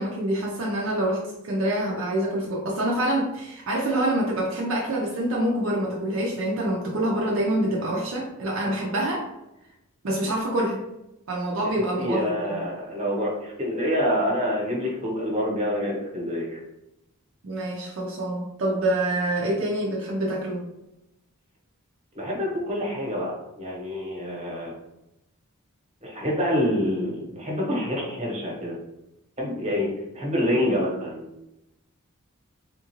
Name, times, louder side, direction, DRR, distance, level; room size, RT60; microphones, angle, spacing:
voice 1, 0.0-9.3 10.0-10.8 11.3-12.6 17.4-20.6, right 1 dB, 60° right, -2 dB, 0.5 m, -26 dB
voice 2, 12.0-16.6 22.1-24.7 26.0-28.8 29.4-31.3, equal, 30° right, -3 dB, 1.0 m, -27 dB
3.6 x 2.4 x 2.9 m, 0.88 s
head